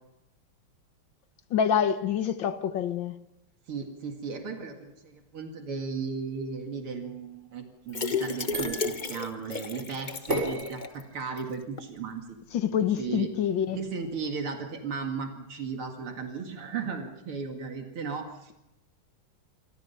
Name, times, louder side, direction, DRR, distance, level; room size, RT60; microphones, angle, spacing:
voice 1, 1.5-3.2 12.5-13.8, left 8 dB, 65° left, 1.8 m, -26 dB
voice 2, 3.7-12.2 13.0-13.3 13.7-18.5, right 5 dB, 80° right, 2.9 m, -35 dB
sound 1, 7.9-11.0 11.4-11.5 11.8-11.9, left 5 dB, 35° left, 0.8 m, -33 dB
sound 2, 8.5-14.3, right 1 dB, 30° right, 7.6 m, -38 dB
27.0 x 25.0 x 5.7 m
omnidirectional pair, 2.4 m